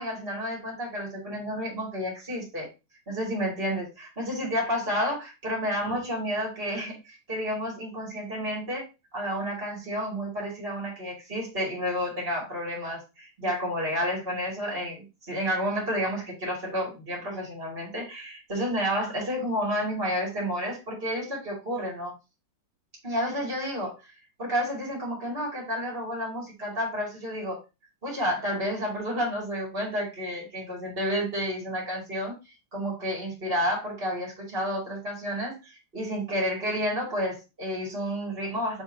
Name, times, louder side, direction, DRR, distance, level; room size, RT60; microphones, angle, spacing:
voice 1, 0.0-2.7 3.0-22.1 23.0-24.1 24.4-27.6 28.0-32.3 32.7-38.8, equal, 20° right, -3 dB, 1.8 m, -30 dB
7.1 x 4.7 x 2.9 m, 0.27 s
omnidirectional pair, 5.6 m